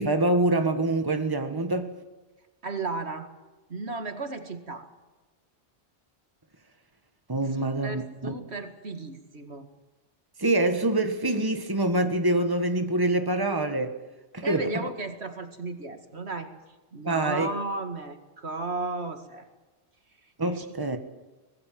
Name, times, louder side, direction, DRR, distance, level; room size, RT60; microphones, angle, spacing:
voice 1, 0.0-1.9 7.3-8.3 10.4-14.0 14.3-14.6 17.0-17.5 20.4-21.0, right 2 dB, 20° right, 7 dB, 1.9 m, -25 dB
voice 2, 2.6-3.3 3.7-4.9 7.6-9.7 14.4-16.5 16.9-19.5 20.6-20.7, right 3 dB, 70° right, 7 dB, 2.4 m, -34 dB
25.0 x 19.5 x 7.7 m, 1.2 s
omnidirectional pair, 1.1 m